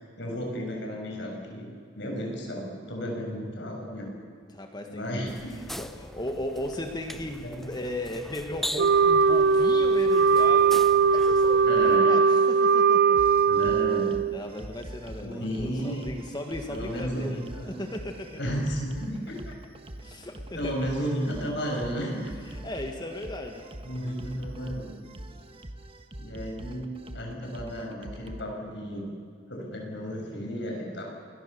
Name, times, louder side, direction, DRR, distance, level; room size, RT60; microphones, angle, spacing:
voice 1, 0.0-1.7 1.9-4.2 4.9-5.5 7.4-7.7 11.6-12.1 13.5-14.2 15.2-16.2 16.7-17.9 18.4-19.5 20.6-22.3 23.8-24.9 26.2-29.1 29.5-31.0, equal, 65° left, 0 dB, 7.0 m, -33 dB
voice 2, 4.5-5.2 5.8-13.2 14.3-18.4 20.0-20.8 22.5-23.6, left 1 dB, 20° left, 4 dB, 1.7 m, -36 dB
sound 1, 5.3-12.0, equal, ahead, 0.8 m, -40 dB
Wind instrument woodwind instrument, 8.8-14.4, right 5 dB, 60° right, 0.5 m, -20 dB
sound 2, 13.2-28.5, right 1 dB, 30° right, 1.5 m, -43 dB
28.5 x 22.0 x 6.9 m, 2.3 s
head